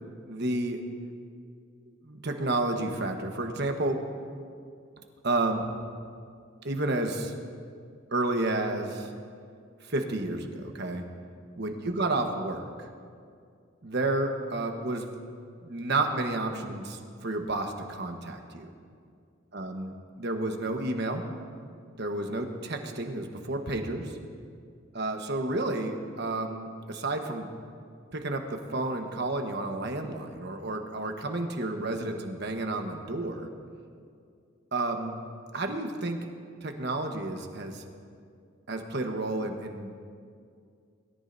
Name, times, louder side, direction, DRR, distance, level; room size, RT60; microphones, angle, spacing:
voice 1, 0.3-0.8 2.0-4.1 5.2-5.7 6.6-7.3 8.1-9.1 9.8-11.0 11.6-12.7 13.8-15.2 15.6-18.7 19.5-19.9 20.2-21.2 22.0-24.2 24.9-27.5 28.1-33.5 34.7-35.2 35.5-36.2 36.6-37.8 38.7-39.9, right 2 dB, 55° right, 4 dB, 1.2 m, -31 dB
22.0 x 13.5 x 2.7 m, 2.3 s
head